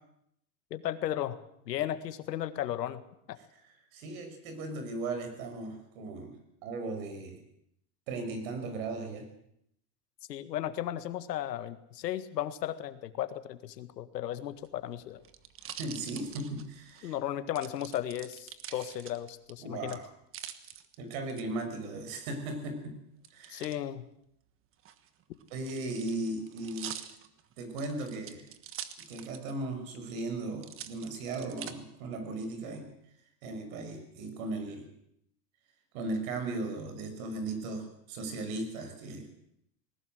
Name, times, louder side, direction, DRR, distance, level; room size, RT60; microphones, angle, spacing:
voice 1, 0.7-1.4 1.7-3.0 3.3-3.4 10.3-15.2 17.0-20.0 23.5-24.1, left 12 dB, 90° left, 12 dB, 1.8 m, -35 dB
voice 2, 3.6-7.4 8.1-9.3 15.8-17.2 18.7-18.9 19.6-20.0 21.0-23.0 23.3-23.7 25.5-27.0 27.6-28.5 29.0-32.9 33.4-34.9 35.9-39.3, right 2 dB, 60° right, 7 dB, 6.1 m, -37 dB
sound 1, 14.5-17.0 17.6-19.5 19.9-21.4 23.2-23.8 24.7-29.6 29.9-30.0 30.6-31.7 32.4-32.9, right 10 dB, 25° right, 1.4 m, -45 dB
19.5 x 17.5 x 7.8 m, 0.73 s
supercardioid pair, 140°, 47 cm